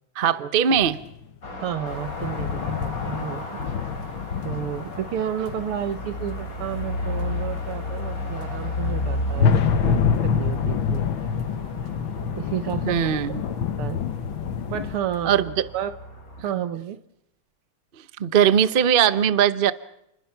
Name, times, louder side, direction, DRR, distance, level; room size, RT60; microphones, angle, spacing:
voice 1, 0.2-1.0 12.9-13.4 15.3-15.6 18.2-19.7, right 8 dB, 55° right, 14 dB, 0.5 m, -20 dB
sound 1, 0.8-1.2 1.9-15.0, left 6 dB, 65° left, 1.8 m, -27 dB
sound 2, 1.4-16.4, left 2 dB, 40° left, 4.3 m, -33 dB
voice 2, 1.6-3.8 4.4-11.1 12.3-13.3 13.8-14.3 14.7-15.5 15.7-15.9 16.4-17.0, right 10 dB, 85° right, 12 dB, 2.1 m, -31 dB
29.5 x 21.5 x 5.8 m, 0.79 s
omnidirectional pair, 2.4 m